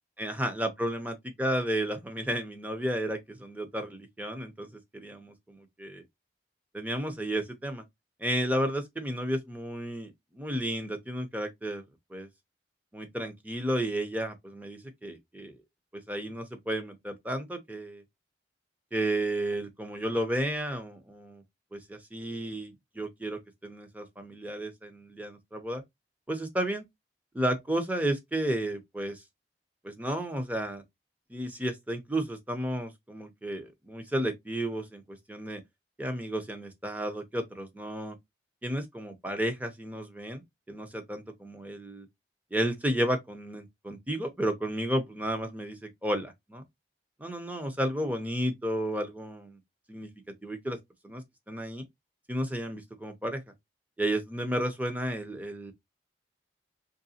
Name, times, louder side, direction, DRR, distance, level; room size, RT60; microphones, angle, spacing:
voice 1, 0.2-1.1 1.4-6.0 6.7-7.8 8.2-11.8 12.1-12.3 12.9-15.6 15.9-18.0 18.9-21.4 21.7-25.8 26.3-26.9 27.3-29.2 29.8-30.8 31.3-35.6 36.0-38.2 38.6-42.1 42.5-46.6 47.2-49.6 49.9-50.1 50.4-50.8 51.0-51.8 52.3-53.4 54.0-55.7, right 1 dB, 10° right, 0.6 m, -32 dB
3.8 x 3.1 x 2.7 m
head